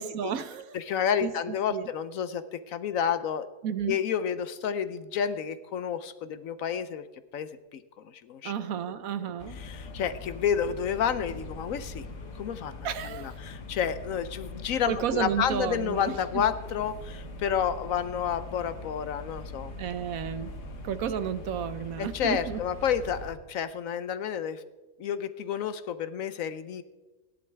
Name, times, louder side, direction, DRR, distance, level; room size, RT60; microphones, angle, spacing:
voice 1, 0.0-0.8 1.2-1.9 3.6-4.0 8.4-9.6 12.8-13.4 14.9-16.4 19.8-20.5 20.8-22.6, right 8 dB, 70° right, 13 dB, 1.0 m, -32 dB
voice 2, 0.7-3.5 3.9-7.1 7.3-8.5 9.6-12.1 12.4-19.7 22.0-24.6 25.0-26.8, left 8 dB, 65° left, 13 dB, 0.9 m, -30 dB
sound 1, 9.4-23.3, left 2 dB, 90° left, 2.0 m, -42 dB
17.5 x 11.0 x 3.3 m, 1.2 s
omnidirectional pair, 1.7 m